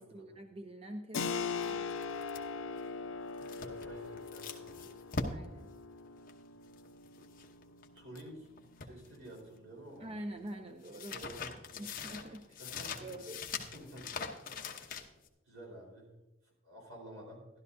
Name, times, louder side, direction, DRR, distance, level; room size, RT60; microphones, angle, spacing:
voice 1, 0.0-2.0 5.3-5.7 10.0-11.2 11.7-12.6 13.0-13.4, right 1 dB, 30° right, 5 dB, 0.6 m, -45 dB
Keyboard (musical), 1.1-11.5, left 5 dB, 65° left, 0.6 m, -42 dB
sound 1, 1.6-8.3 8.6-9.7 10.0-15.3, left 4 dB, 40° left, 0.9 m, -43 dB
voice 2, 3.4-5.3 7.9-8.5 8.8-10.1 11.1-11.9 12.6-13.1 13.5-14.1 15.5-16.1 16.4-17.5, right 1 dB, 70° right, -1 dB, 4.3 m, -51 dB
13.0 x 12.0 x 2.7 m, 0.99 s
head